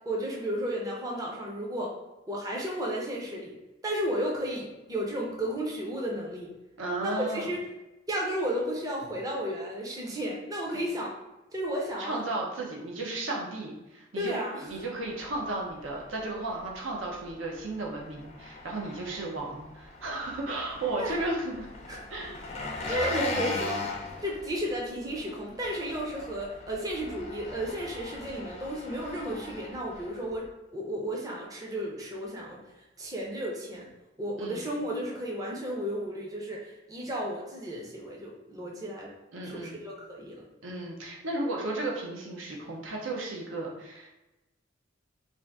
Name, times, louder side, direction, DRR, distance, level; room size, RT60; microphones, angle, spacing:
voice 1, 0.1-2.0 2.3-3.5 3.8-6.5 7.0-7.6 8.1-11.1 11.5-12.2 14.2-14.8 21.0-21.2 21.9-22.0 22.9-23.8 24.2-32.6 33.0-33.9 34.2-39.1 39.4-40.4, equal, 20° right, -3 dB, 0.5 m, -33 dB
voice 2, 6.8-7.5 12.0-14.4 14.6-21.7 22.1-22.6 22.9-23.6 34.4-34.6 39.3-39.8 40.6-44.1, right 2 dB, 85° right, -1 dB, 0.6 m, -34 dB
Engine, 14.7-30.5, left 2 dB, 35° left, 0.4 m, -40 dB
2.6 x 2.4 x 3.4 m, 1.0 s
head